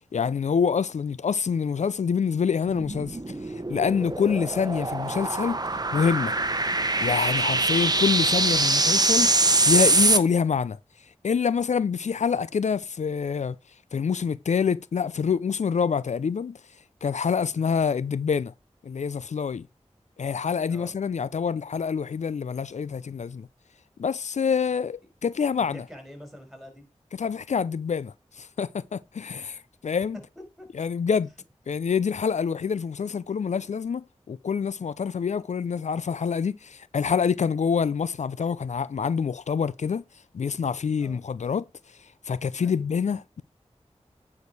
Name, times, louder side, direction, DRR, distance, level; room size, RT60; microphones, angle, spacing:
voice 1, 0.1-5.6 5.9-6.3 7.0-9.3 9.7-10.8 11.2-13.6 13.9-16.6 17.0-18.5 18.8-19.7 20.2-23.5 24.0-25.8 27.2-30.2 30.7-31.3 31.7-40.0 40.3-41.6 42.3-43.4, left 6 dB, 80° left, 0.4 m, -26 dB
sound 1, 2.7-10.2, right 2 dB, 35° right, 0.9 m, -23 dB
voice 2, 25.7-26.8 30.4-30.7 41.0-41.2 42.6-42.8, left 1 dB, ahead, 4.4 m, -45 dB
9.5 x 4.6 x 4.7 m
wide cardioid pair, 55°, 12 cm